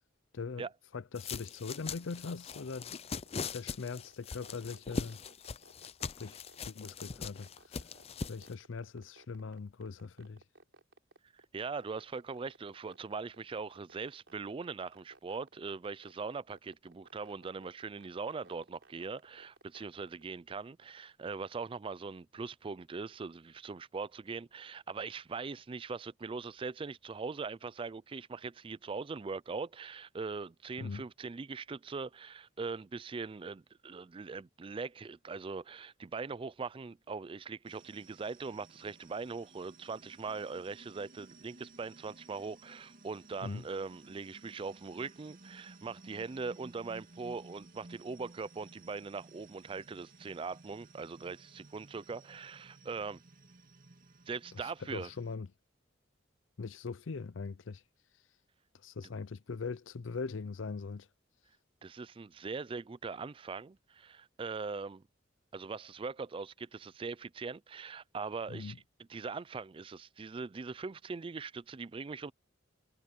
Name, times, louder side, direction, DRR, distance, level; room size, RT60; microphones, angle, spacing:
voice 1, 0.3-0.7 0.9-3.0 3.5-5.2 6.2-7.8 8.3-10.4 30.8-31.0 43.4-43.6 54.6-55.5 56.6-57.8 58.8-61.1 68.5-68.8, left 4 dB, 80° left, 0.6 m, -41 dB
sound 1, 1.1-8.5, left 5 dB, 35° left, 0.5 m, -41 dB
sound 2, 3.3-20.2, right 2 dB, 75° right, 4.4 m, -59 dB
voice 2, 11.3-53.2 54.3-55.1 61.8-65.0 65.5-68.7 69.1-72.3, right 4 dB, 30° right, 0.4 m, -41 dB
sound 3, 37.6-55.4, right 2 dB, 45° right, 2.5 m, -57 dB
head